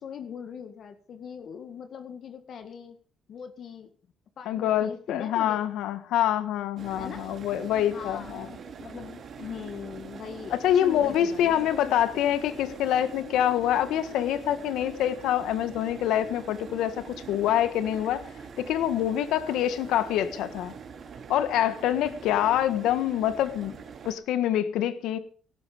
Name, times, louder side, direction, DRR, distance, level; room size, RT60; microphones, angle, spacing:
voice 1, 0.0-3.0 3.3-3.9 4.4-5.6 7.0-7.3 7.9-11.9, left 7 dB, 60° left, 8 dB, 1.8 m, -41 dB
voice 2, 4.4-8.5 10.5-18.3 18.6-20.7 21.3-23.8 24.0-25.2, left 11 dB, 90° left, 12 dB, 1.5 m, -26 dB
sound 1, 6.8-24.1, right 6 dB, 55° right, 3.0 m, -43 dB
16.5 x 12.5 x 5.1 m, 0.42 s
cardioid pair, 90°, 0 cm